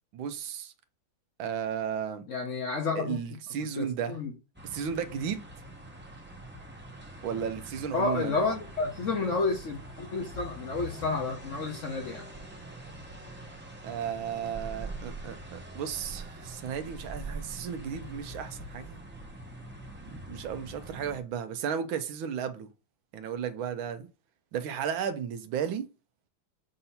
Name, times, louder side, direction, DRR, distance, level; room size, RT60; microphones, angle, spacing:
voice 1, 0.1-0.7 1.4-2.2 3.0-4.2 4.6-5.4 7.2-8.4 13.8-19.0 20.1-22.7 23.1-24.1 24.5-25.8, right 8 dB, 90° right, 1.5 m, -34 dB
voice 2, 2.3-3.2 3.8-4.3 7.9-12.3, left 4 dB, 50° left, 0.9 m, -30 dB
sound 1, 4.5-21.2, right 1 dB, 10° right, 0.6 m, -44 dB
6.6 x 2.7 x 5.6 m
omnidirectional pair, 2.2 m